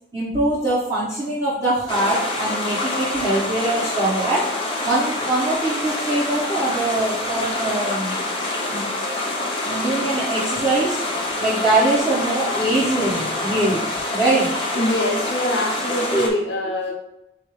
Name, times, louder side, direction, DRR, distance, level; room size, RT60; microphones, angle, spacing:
voice 1, 0.1-8.3 8.7-8.9 9.6-11.0 11.4-14.8 16.1-16.2, right 2 dB, 20° right, -11 dB, 1.2 m, -23 dB
sound 1, 1.9-16.3, left 2 dB, 30° left, 0.7 m, -26 dB
voice 2, 14.7-16.9, left 1 dB, 85° left, 0 dB, 0.8 m, -24 dB
5.4 x 2.0 x 4.8 m, 0.84 s
head